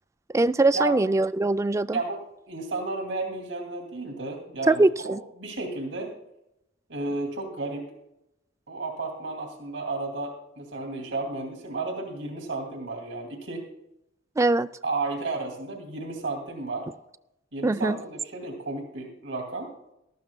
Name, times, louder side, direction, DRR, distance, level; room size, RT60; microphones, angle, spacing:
voice 1, 0.3-2.0 4.7-5.2 14.4-14.7 17.6-18.0, right 2 dB, 15° right, 14 dB, 0.3 m, -22 dB
voice 2, 1.9-6.1 6.9-7.9 8.7-13.6 14.8-16.9 17.5-19.7, right 2 dB, 80° right, 2 dB, 2.5 m, -33 dB
19.0 x 13.5 x 2.3 m, 0.85 s
head